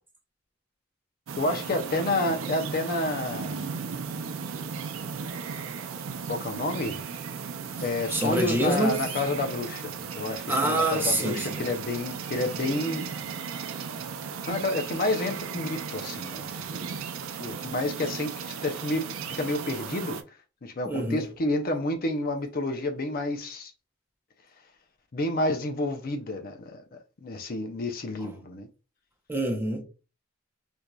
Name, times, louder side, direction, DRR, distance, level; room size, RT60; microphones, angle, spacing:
sound 1, 1.3-20.2, right 6 dB, 90° right, 0.5 m, -36 dB
voice 1, 1.4-3.7 6.3-7.0 7.8-13.0 14.4-16.8 17.4-20.2 20.6-23.7 25.1-28.7, left 2 dB, 45° left, 0.6 m, -30 dB
voice 2, 8.1-9.0 10.5-11.6 20.9-21.3 28.2-28.3 29.3-29.8, right 1 dB, 10° right, 0.7 m, -26 dB
4.5 x 2.5 x 2.2 m
head